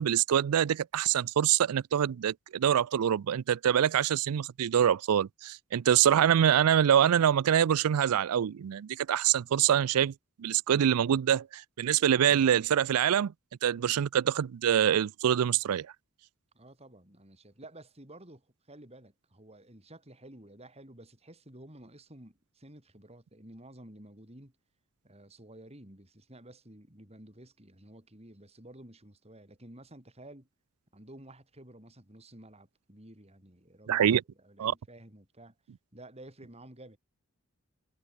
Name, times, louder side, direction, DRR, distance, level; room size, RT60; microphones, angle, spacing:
voice 1, 0.0-10.1 10.4-13.3 13.6-15.9 33.9-34.2 34.6-34.7, right 9 dB, 80° right, 0.4 m, -25 dB
voice 2, 16.5-24.5 25.0-30.5 30.9-34.1 34.4-35.5 35.9-37.0, right 1 dB, 30° right, 4.3 m, -52 dB
head